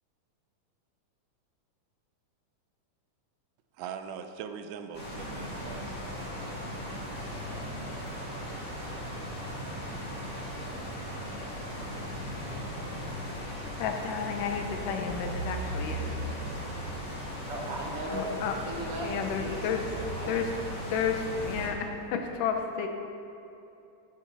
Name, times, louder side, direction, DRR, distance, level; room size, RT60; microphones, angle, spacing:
voice 1, 3.8-6.1, right 7 dB, 80° right, 7 dB, 2.1 m, -41 dB
sound 1, 4.9-21.7, equal, 25° left, 3.2 m, -37 dB
voice 2, 13.8-16.2 18.1-18.5 19.0-19.9 20.3-20.5 20.9-22.9, left 7 dB, 85° left, 4 dB, 2.5 m, -32 dB
voice 3, 17.5-19.6 20.0-20.4, right 1 dB, 60° right, -2 dB, 1.8 m, -37 dB
13.0 x 10.5 x 4.1 m, 2.7 s
omnidirectional pair, 3.7 m